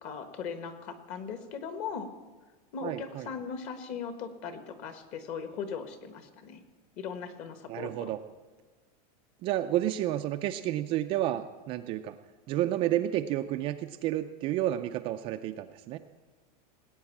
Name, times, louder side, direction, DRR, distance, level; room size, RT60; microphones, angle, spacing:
voice 1, 0.0-2.1 2.7-6.6 7.0-8.1, left 6 dB, 35° left, 8 dB, 1.4 m, -39 dB
voice 2, 2.8-3.3 7.7-8.2 9.4-12.2 12.5-16.0, right 13 dB, 25° right, 7 dB, 0.4 m, -30 dB
18.5 x 8.9 x 7.2 m, 1.3 s
supercardioid pair, 170°, 20 cm